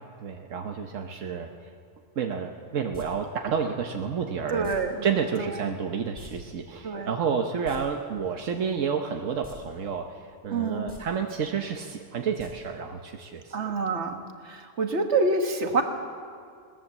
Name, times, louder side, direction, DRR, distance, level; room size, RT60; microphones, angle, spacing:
voice 1, 0.2-1.7 2.1-4.7 5.0-13.7, right 6 dB, 85° right, 4 dB, 1.4 m, -30 dB
sound 1, 2.9-3.1 4.6-4.8 6.1-6.3 6.6-6.7 7.5-7.8 9.4-9.6 9.9-10.0 10.8-11.0 12.4-12.5 12.8-12.9, equal, 20° left, 5.5 m, -45 dB
voice 2, 4.5-5.0 5.4-5.5 6.8-7.1 10.5-10.9 13.5-14.2 14.4-15.8, right 3 dB, 65° right, 5 dB, 1.8 m, -26 dB
21.5 x 18.0 x 7.3 m, 2.2 s
omnidirectional pair, 1.3 m